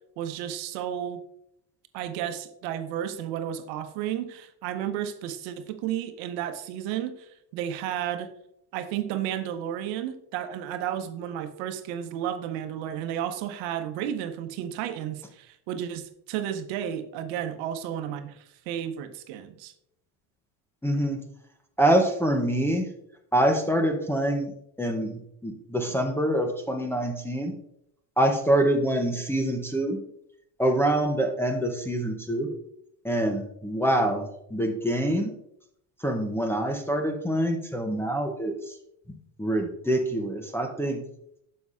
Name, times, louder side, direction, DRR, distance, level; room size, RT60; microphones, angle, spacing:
voice 1, 0.2-1.2 1.9-8.3 8.7-19.7, right 10 dB, 85° right, 9 dB, 0.9 m, -32 dB
voice 2, 20.8-21.2 21.8-22.9 23.3-27.5 28.2-30.0 30.6-32.5 33.0-35.3 36.0-38.7 39.4-41.0, right 1 dB, 5° left, 1 dB, 0.5 m, -25 dB
9.3 x 6.8 x 2.4 m, 0.75 s
cardioid pair, 135°, 50 cm